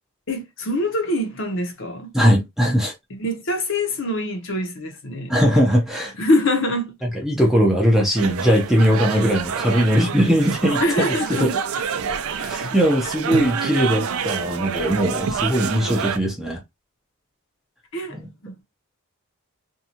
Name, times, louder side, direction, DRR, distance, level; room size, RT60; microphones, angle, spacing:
voice 1, 0.3-2.1 3.1-5.4 6.1-7.0 10.8-11.5 12.3-12.7 17.9-18.6, left 1 dB, 60° left, 0.8 m, -24 dB
voice 2, 2.1-2.9 5.3-6.1 7.2-11.5 12.3-16.6 18.1-18.3, equal, ahead, 0.6 m, -20 dB
sound 1, 8.2-16.2, right 6 dB, 80° right, 0.4 m, -27 dB
2.7 x 2.3 x 2.8 m
head